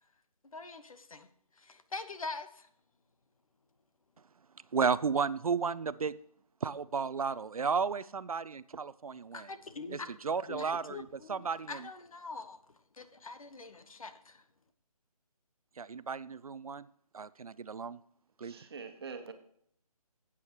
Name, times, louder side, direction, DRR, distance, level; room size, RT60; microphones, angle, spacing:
voice 1, 0.5-1.3 1.6-2.7 9.3-10.2 10.5-12.6 12.9-14.4, left 3 dB, 65° left, 1.1 m, -44 dB
voice 2, 4.7-6.1 6.6-9.5 9.9-10.0 10.2-11.8 15.8-16.9 17.1-18.0 18.4-18.5, right 5 dB, 65° right, 0.5 m, -33 dB
voice 3, 18.4-19.3, right 5 dB, 40° right, 1.3 m, -44 dB
13.5 x 8.4 x 3.0 m
figure-of-eight pair, 150°, 19 cm